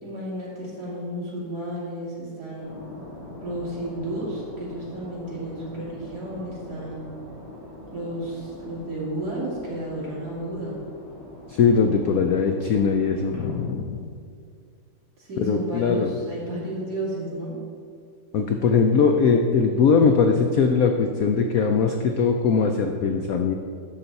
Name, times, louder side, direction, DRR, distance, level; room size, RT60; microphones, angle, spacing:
voice 1, 0.0-2.8 3.4-7.1 7.9-10.8 15.2-17.5, right 1 dB, 50° right, -6 dB, 3.1 m, -32 dB
sound 1, 2.6-13.7, left 1 dB, 50° left, 3.2 m, -43 dB
voice 2, 11.5-14.1 15.4-16.2 18.3-23.5, left 5 dB, 85° left, 5 dB, 0.7 m, -21 dB
11.5 x 6.8 x 4.1 m, 2.2 s
omnidirectional pair, 2.2 m